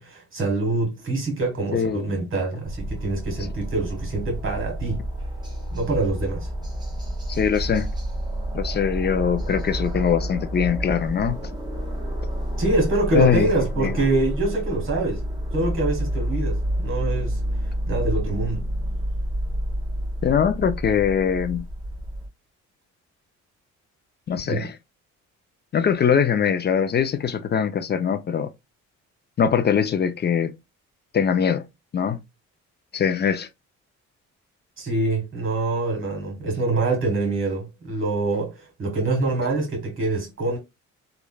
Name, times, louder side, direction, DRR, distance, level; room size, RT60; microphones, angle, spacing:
voice 1, 0.0-5.0 5.7-6.5 12.6-15.2 15.5-17.4 17.9-18.7 24.5-24.7 34.8-40.6, right 2 dB, 45° right, 1.6 m, -25 dB
voice 2, 1.7-2.1 7.3-7.9 8.5-11.5 13.1-13.5 13.8-14.0 20.2-21.7 24.3-24.7 25.7-28.5 29.4-30.5 31.1-31.6 31.9-32.2 32.9-33.5, left 7 dB, 35° left, 0.4 m, -22 dB
sound 1, 2.7-22.3, equal, 15° right, 1.0 m, -29 dB
3.1 x 2.4 x 2.2 m
cardioid pair, 90°, 30 cm